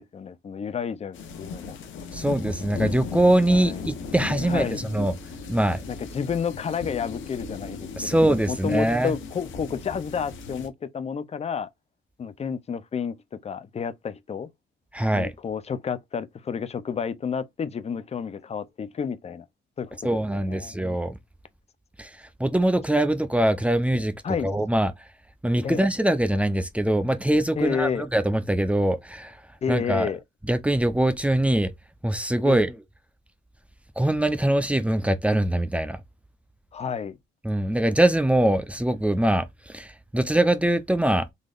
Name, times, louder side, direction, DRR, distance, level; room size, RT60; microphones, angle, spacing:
voice 1, 0.0-1.8 3.5-3.9 4.4-4.8 5.9-8.2 8.5-11.7 12.2-13.1 13.4-14.5 15.1-19.4 19.8-20.8 24.2-24.5 25.6-25.8 27.6-28.1 29.6-30.2 32.4-32.7 36.7-37.2, left 6 dB, 30° left, 0.6 m, -30 dB
sound 1, 1.1-10.7, left 4 dB, 75° left, 0.9 m, -36 dB
voice 2, 2.1-5.1 5.5-5.8 8.0-9.1 14.9-15.3 20.0-21.2 22.0-22.1 22.4-24.1 24.4-24.9 25.4-29.3 29.7-30.1 30.5-31.7 32.0-32.7 34.0-36.0 37.4-41.3, right 1 dB, 5° right, 0.6 m, -23 dB
3.9 x 3.2 x 2.5 m
cardioid pair, 90°, 20 cm